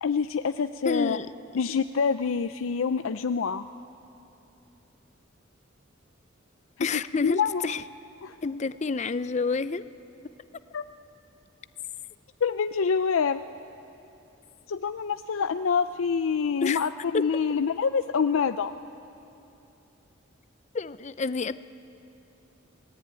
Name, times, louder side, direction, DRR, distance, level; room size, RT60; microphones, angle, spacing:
voice 1, 0.0-1.2 1.5-3.7 6.8-7.6 8.2-8.4 10.7-10.8 12.4-13.4 14.7-18.7, left 6 dB, 90° left, 10 dB, 0.5 m, -26 dB
voice 2, 0.8-1.3 6.8-7.8 8.4-9.8 16.6-16.8 17.1-17.2 20.7-21.6, left 4 dB, 35° left, 14 dB, 0.5 m, -28 dB
27.0 x 19.5 x 8.9 m, 2.9 s
head